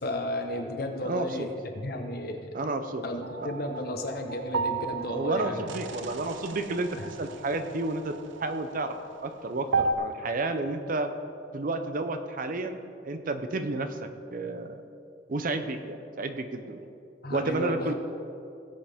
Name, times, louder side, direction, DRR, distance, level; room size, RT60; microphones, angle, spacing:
voice 1, 0.0-1.5 1.7-2.6 3.0-5.6 7.0-7.1 17.2-17.9, left 1 dB, 55° left, 4 dB, 1.1 m, -33 dB
voice 2, 1.0-1.5 2.5-3.0 5.1-8.1 8.4-8.9 9.2-11.1 11.5-14.8 15.3-16.9 17.3-17.9, right 2 dB, 45° right, 8 dB, 0.6 m, -31 dB
sound 1, 3.2-9.9, right 4 dB, 85° right, 0.6 m, -34 dB
17.5 x 7.9 x 3.5 m, 2.6 s
head